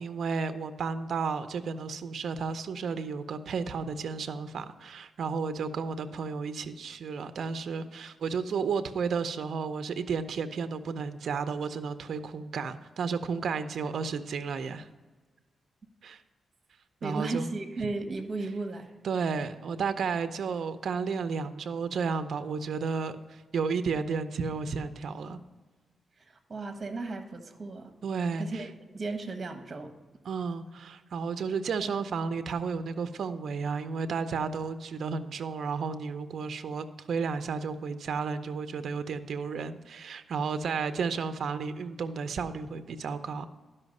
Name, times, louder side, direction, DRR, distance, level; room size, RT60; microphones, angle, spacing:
voice 1, 0.0-14.9 16.0-16.2 17.0-17.5 19.0-25.4 28.0-28.6 30.2-43.5, right 5 dB, 70° right, 10 dB, 0.6 m, -32 dB
voice 2, 17.0-18.9 26.2-27.9 28.4-29.9, right 3 dB, 40° right, 7 dB, 1.3 m, -35 dB
12.0 x 5.6 x 5.3 m, 1.3 s
cardioid pair, 95°, 0 cm